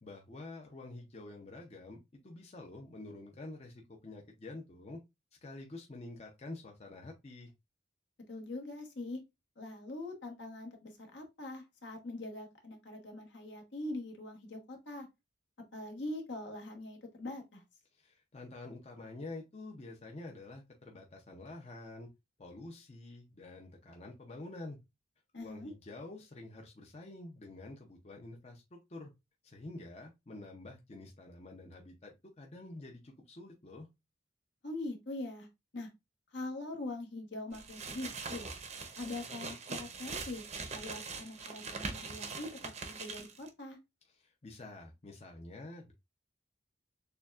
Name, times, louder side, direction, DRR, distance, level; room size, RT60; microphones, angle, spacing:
voice 1, 0.0-5.0 5.4-7.5 17.9-22.1 22.4-24.8 25.4-29.1 29.4-33.9 44.1-45.9, left 2 dB, 35° left, 2 dB, 0.6 m, -48 dB
voice 2, 8.3-9.2 9.6-15.1 15.7-17.6 25.3-25.7 34.6-35.5 35.7-35.9 36.3-38.5 39.0-40.4 40.7-43.8, left 2 dB, 70° left, 2 dB, 1.2 m, -43 dB
sound 1, 37.5-43.5, right 4 dB, 35° right, 0.6 m, -42 dB
6.7 x 2.3 x 2.4 m, 0.22 s
head